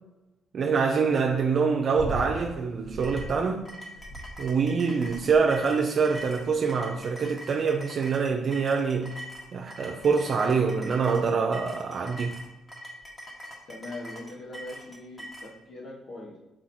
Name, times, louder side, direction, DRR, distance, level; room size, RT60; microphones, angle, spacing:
voice 1, 0.5-3.7 4.4-9.2 9.5-12.4, right 5 dB, 55° right, 0.6 m, -25 dB
sound 1, 1.9-2.4 2.8-3.4 3.9-4.6 5.1-5.5 6.2-6.5 7.2-7.6 8.5-8.6, right 1 dB, 40° left, 1.5 m, -38 dB
sound 2, 3.0-15.5, equal, 20° left, 1.5 m, -43 dB
voice 2, 13.7-16.4, left 2 dB, 60° left, 1.3 m, -41 dB
6.1 x 4.9 x 4.3 m
cardioid pair, 90°, 0 cm